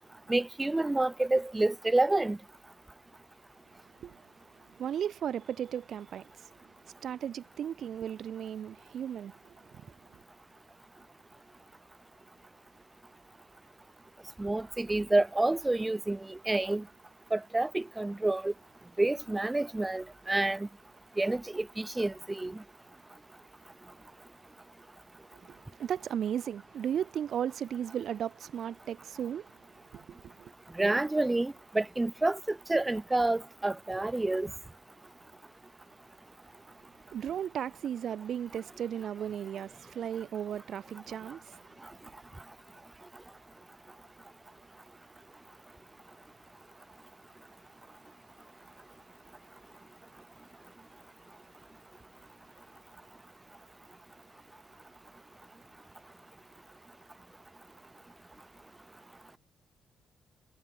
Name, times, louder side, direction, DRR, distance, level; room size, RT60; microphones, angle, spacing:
voice 1, 0.3-2.4 14.4-16.8 17.3-18.5 19.0-20.7 21.2-22.6 30.7-34.5, right 2 dB, 15° right, 2.4 m, -28 dB
voice 2, 4.6-6.5 6.8-9.9 25.3-29.7 29.9-30.5 37.1-41.6, right 9 dB, 65° right, 2.3 m, -36 dB
cardioid pair, 90°, 0 cm